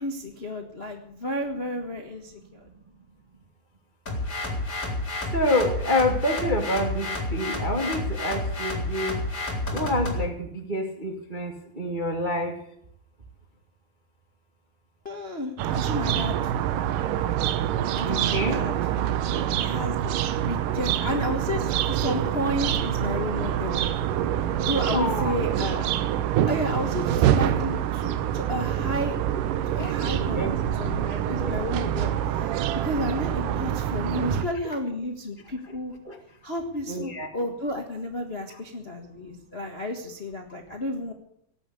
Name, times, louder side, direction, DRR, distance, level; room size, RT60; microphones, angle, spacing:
voice 1, 0.0-2.7 15.0-16.5 18.0-18.7 19.3-20.1 20.4-23.8 24.4-25.9 26.5-29.2 29.7-35.9 36.4-41.1, left 1 dB, 85° left, 3 dB, 0.5 m, -32 dB
sound 1, 4.1-10.3, left 2 dB, 25° left, 3.8 m, -30 dB
voice 2, 5.3-9.2 9.7-12.5 18.0-18.6 24.9-25.3 29.8-30.6 31.4-31.6 34.3-34.4 36.0-36.2 36.9-37.3, left 1 dB, 35° right, 3 dB, 0.7 m, -27 dB
Backyard Birds and Plane, 15.6-34.5, right 11 dB, 75° right, 2.3 m, -26 dB
18.0 x 8.6 x 8.3 m, 0.69 s
omnidirectional pair, 4.1 m